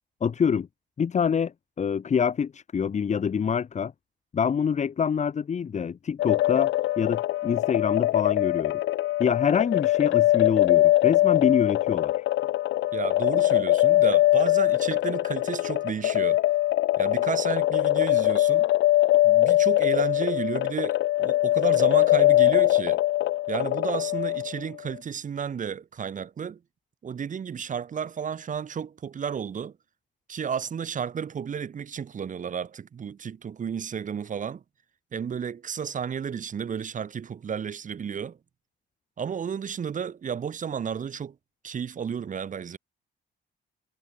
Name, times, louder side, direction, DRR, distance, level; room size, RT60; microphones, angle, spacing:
voice 1, 0.2-0.7 1.0-3.9 4.3-8.8 9.2-12.1, left 7 dB, 35° left, 0.8 m, -26 dB
sound 1, 6.2-24.6, left 15 dB, 70° left, 0.5 m, -22 dB
voice 2, 12.9-16.4 17.0-18.7 19.2-23.0 23.5-26.6 27.0-29.7 30.3-34.6 35.1-38.4 39.2-41.4 41.6-42.8, right 7 dB, 40° right, 0.9 m, -32 dB
cardioid pair, 90°, 20 cm